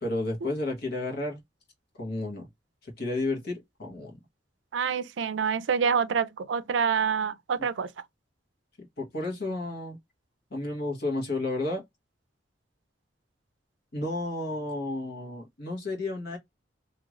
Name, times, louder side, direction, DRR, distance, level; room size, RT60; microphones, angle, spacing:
voice 1, 0.0-1.4 2.0-2.5 3.0-4.2 9.0-10.0 10.5-11.8 13.9-16.4, left 2 dB, 60° left, 1.3 m, -32 dB
voice 2, 4.7-7.9, right 6 dB, 70° right, 0.4 m, -27 dB
3.0 x 2.8 x 2.4 m
head